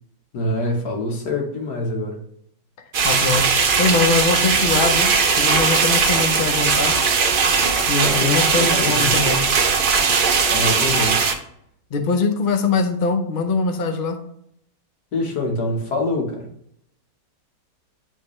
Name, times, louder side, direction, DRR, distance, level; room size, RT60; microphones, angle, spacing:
voice 1, 0.3-2.2 8.0-9.3 10.5-11.2 15.1-16.5, left 2 dB, 70° left, 1 dB, 1.9 m, -25 dB
sound 1, 2.9-11.3, right 5 dB, 60° right, 0.5 m, -19 dB
voice 2, 3.0-7.0 7.9-9.4 11.9-14.2, left 4 dB, 50° left, 5 dB, 0.6 m, -22 dB
10.5 x 3.7 x 3.1 m, 0.71 s
omnidirectional pair, 1.9 m